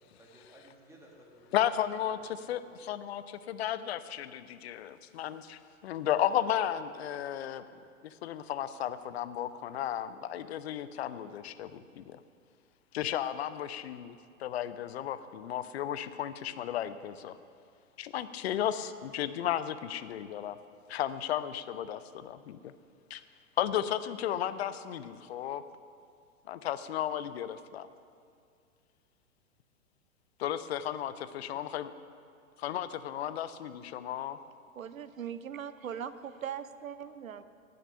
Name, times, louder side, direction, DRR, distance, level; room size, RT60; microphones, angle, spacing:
voice 1, 0.0-1.6 2.1-2.9 31.2-31.7, right 1 dB, 5° right, -2 dB, 1.9 m, -58 dB
voice 2, 1.5-7.6 8.0-12.2 12.9-17.4 18.0-20.6 20.9-22.7 23.1-23.2 23.6-25.6 26.5-27.9 30.4-31.9 32.6-34.4, left 11 dB, 50° left, 13 dB, 0.7 m, -34 dB
voice 3, 34.7-37.4, right 8 dB, 75° right, 13 dB, 0.8 m, -40 dB
18.5 x 6.7 x 5.6 m, 2.3 s
figure-of-eight pair, 105°, 41 cm